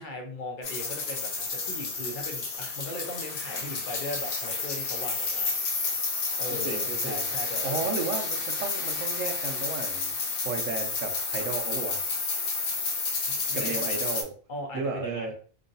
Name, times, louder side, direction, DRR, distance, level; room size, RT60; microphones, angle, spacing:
voice 1, 0.0-5.9 6.4-7.9 13.3-13.9 14.5-15.3, left 1 dB, 50° left, 2 dB, 0.7 m, -38 dB
sound 1, 0.6-14.2, left 4 dB, 80° left, 1.1 m, -31 dB
voice 2, 6.6-7.3 7.6-10.1 10.4-12.0 13.5-14.3 14.7-15.3, right 4 dB, 75° right, 4 dB, 1.0 m, -33 dB
3.0 x 2.5 x 2.6 m, 0.43 s
omnidirectional pair, 1.4 m